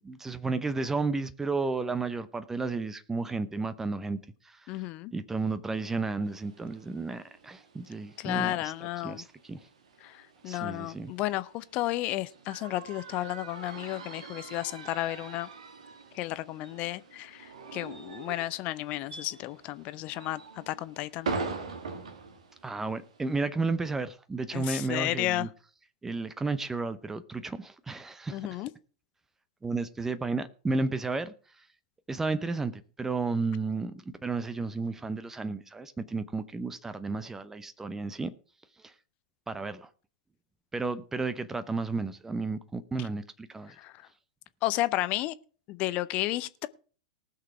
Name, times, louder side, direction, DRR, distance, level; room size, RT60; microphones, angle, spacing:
voice 1, 0.0-4.2 4.4-4.7 5.1-8.7 9.0-9.6 10.4-11.1 22.6-25.5 26.0-28.6 29.6-31.6 32.1-38.3 38.8-38.9 39.5-39.9 40.7-43.8, right 3 dB, 10° right, 0.7 m, -32 dB
voice 2, 4.7-5.1 8.2-9.2 10.0-15.5 16.1-21.3 24.5-25.5 28.3-28.7 43.8-43.9 44.6-45.3 45.7-46.7, left 16 dB, 35° left, 0.6 m, -32 dB
sound 1, 6.2-23.4, right 4 dB, 65° right, 2.1 m, -43 dB
19.0 x 6.7 x 4.8 m
figure-of-eight pair, 95°, 4 cm